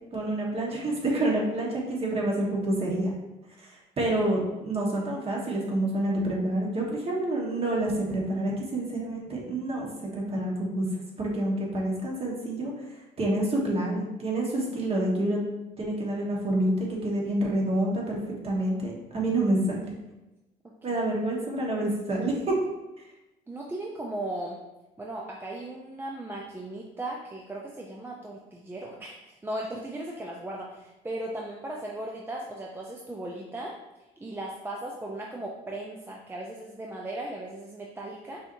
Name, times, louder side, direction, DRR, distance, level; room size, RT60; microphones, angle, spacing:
voice 1, 0.1-3.1 3.6-10.9 11.2-12.7 13.2-15.4 15.8-19.9 20.8-22.5, right 1 dB, 35° right, -2 dB, 1.3 m, -28 dB
voice 2, 23.5-24.6 25.0-33.7 34.2-38.4, right 1 dB, 15° right, -2 dB, 0.5 m, -37 dB
5.5 x 3.0 x 2.6 m, 0.99 s
cardioid pair, 110°, 17 cm